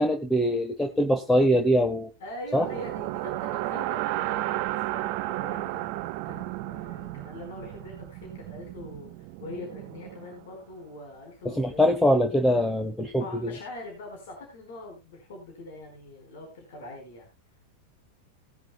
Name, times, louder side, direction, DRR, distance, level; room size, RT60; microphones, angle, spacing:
voice 1, 0.0-2.1 2.5-2.6 11.4-13.5, equal, 5° left, 6 dB, 1.2 m, -23 dB
voice 2, 2.2-12.0 13.2-17.3, left 2 dB, 55° left, 1 dB, 4.5 m, -43 dB
sound 1, 2.5-10.6, right 16 dB, 45° right, 0.6 m, -33 dB
18.5 x 10.5 x 2.2 m, 0.25 s
figure-of-eight pair, 90°, 0 cm